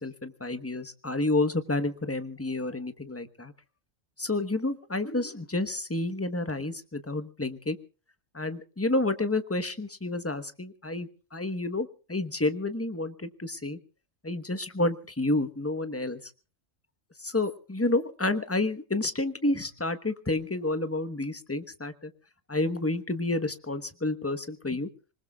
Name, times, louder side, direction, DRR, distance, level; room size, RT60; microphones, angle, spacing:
voice 1, 0.0-3.5 4.2-7.8 8.3-13.8 14.2-16.2 17.2-22.1 22.5-24.9, left 2 dB, 10° left, 10 dB, 1.1 m, -30 dB
26.0 x 20.0 x 2.4 m, 0.37 s
omnidirectional pair, 1.3 m